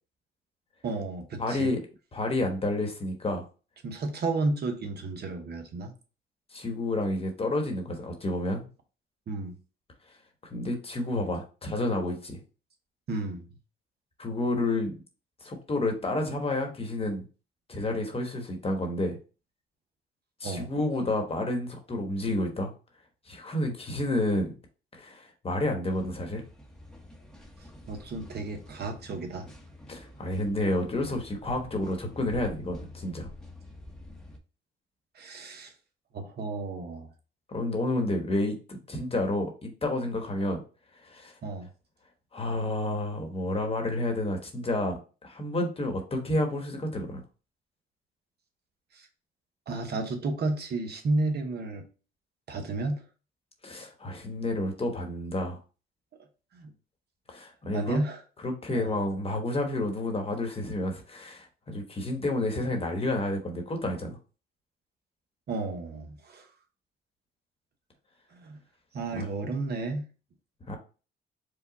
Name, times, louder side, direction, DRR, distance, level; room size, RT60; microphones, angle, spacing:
voice 1, 0.8-1.7 3.8-5.9 9.3-9.6 13.1-13.5 20.4-20.7 27.9-29.5 35.1-35.7 36.1-37.1 41.4-41.7 48.9-49.1 49.7-51.8 52.5-53.0 56.5-56.7 57.7-58.2 58.7-58.9 65.5-66.5 68.3-68.6 68.9-70.1, right 3 dB, 55° right, 4 dB, 0.9 m, -32 dB
voice 2, 1.4-1.8 2.1-3.4 6.5-8.7 10.5-12.4 14.2-14.9 15.4-17.2 17.7-19.2 20.4-22.7 23.3-24.6 24.9-26.4 29.9-33.3 37.5-40.6 41.0-41.3 42.3-47.2 53.6-55.6 57.3-58.0 58.4-64.2 69.1-69.3 70.7-70.8, left 1 dB, 30° left, 3 dB, 1.2 m, -30 dB
sound 1, 25.9-34.4, left 1 dB, 5° left, 1.0 m, -48 dB
4.9 x 2.3 x 4.0 m, 0.35 s
cardioid pair, 90°, 20 cm